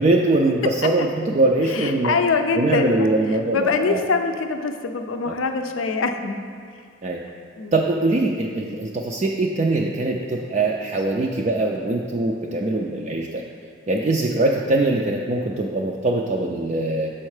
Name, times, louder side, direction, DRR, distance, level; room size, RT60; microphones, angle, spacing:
voice 1, 0.0-2.2 2.6-4.0 5.3-5.4 7.0-7.2 7.7-13.4 13.9-17.1, right 2 dB, 35° right, -1 dB, 0.3 m, -22 dB
voice 2, 1.7-3.1 3.5-6.4 7.6-7.7, left 4 dB, 75° left, 6 dB, 0.5 m, -23 dB
6.4 x 4.4 x 4.8 m, 2.1 s
head